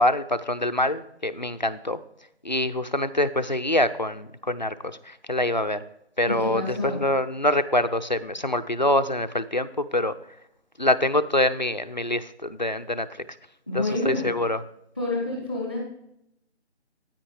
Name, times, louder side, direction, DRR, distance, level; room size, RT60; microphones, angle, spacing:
voice 1, 0.0-2.0 2.4-5.8 6.2-10.1 10.8-13.3 13.7-14.6, left 1 dB, 45° left, 11 dB, 0.4 m, -25 dB
voice 2, 6.3-7.1 13.7-14.3 15.0-15.8, left 2 dB, 10° right, -2 dB, 1.0 m, -28 dB
10.0 x 9.0 x 3.2 m, 0.77 s
figure-of-eight pair, 175°, 33 cm